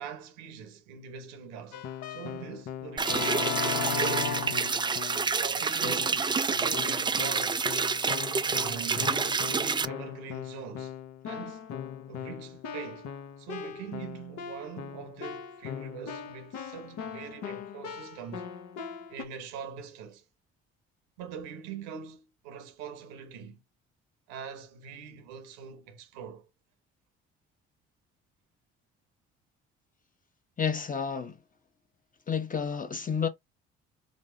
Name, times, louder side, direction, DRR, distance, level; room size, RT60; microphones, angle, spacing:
voice 1, 0.0-1.8 2.1-4.8 5.4-7.8 8.5-10.9 11.2-11.7 12.1-13.1 13.4-18.5 19.1-20.2 21.2-23.6 24.3-26.5, right 7 dB, 85° right, 1.0 m, -43 dB
Keyboard (musical), 1.7-5.4 5.8-6.3 6.7-19.2, left 7 dB, 70° left, 0.9 m, -38 dB
sound 1, 3.0-9.9, right 5 dB, 15° right, 0.4 m, -28 dB
voice 2, 30.6-31.4 32.3-33.3, left 6 dB, 30° left, 0.9 m, -30 dB
5.2 x 2.0 x 3.8 m
hypercardioid pair, 60°, 29 cm